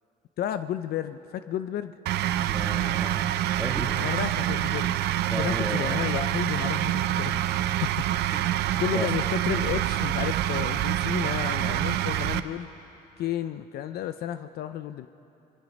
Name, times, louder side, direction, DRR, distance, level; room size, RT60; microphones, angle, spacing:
voice 1, 0.4-1.9 3.9-7.4 7.8-8.0 8.8-12.7 13.2-15.1, left 11 dB, 65° left, 11 dB, 0.6 m, -32 dB
sound 1, 2.1-12.4, right 13 dB, 80° right, 0.6 m, -26 dB
voice 2, 2.4-3.3 3.6-3.9 5.2-6.0 8.3-9.1, right 1 dB, ahead, 1 dB, 2.3 m, -34 dB
23.5 x 22.5 x 5.3 m, 2.9 s
cardioid pair, 110°, 17 cm